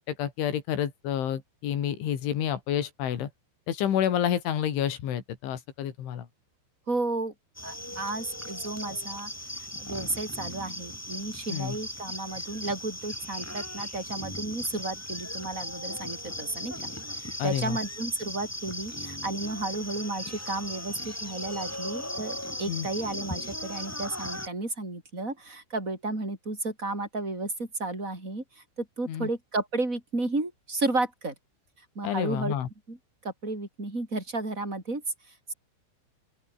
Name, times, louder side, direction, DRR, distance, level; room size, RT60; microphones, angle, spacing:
voice 1, 0.0-3.3 3.7-6.3 11.5-11.8 17.4-17.8 22.7-22.9 29.1-29.3 32.0-32.7, left 10 dB, 75° left, 5.3 m, -29 dB
voice 2, 6.9-7.3 7.6-28.4 28.8-31.3 32.0-32.5 32.9-33.0 33.2-35.0, right 2 dB, 15° right, 7.6 m, -33 dB
sound 1, 7.5-24.5, left 1 dB, 10° left, 0.7 m, -38 dB
open air
omnidirectional pair, 5.6 m